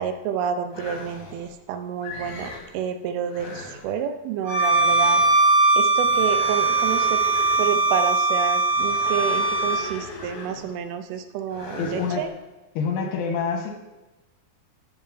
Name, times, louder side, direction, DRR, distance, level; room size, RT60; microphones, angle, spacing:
voice 1, 0.0-5.2 5.8-7.2 7.6-12.3, right 8 dB, 85° right, 8 dB, 2.4 m, -29 dB
sound 1, 0.7-1.5 2.0-2.7 3.2-3.9 4.5-5.4 6.0-7.9 8.7-10.8 11.5-12.3, left 3 dB, 75° left, 1.5 m, -38 dB
Bowed string instrument, 4.5-9.9, right 3 dB, 60° right, 2.6 m, -20 dB
voice 2, 11.8-12.3 12.8-13.7, left 5 dB, 90° left, 4 dB, 2.8 m, -26 dB
8.8 x 3.2 x 5.3 m, 1.1 s
omnidirectional pair, 4.5 m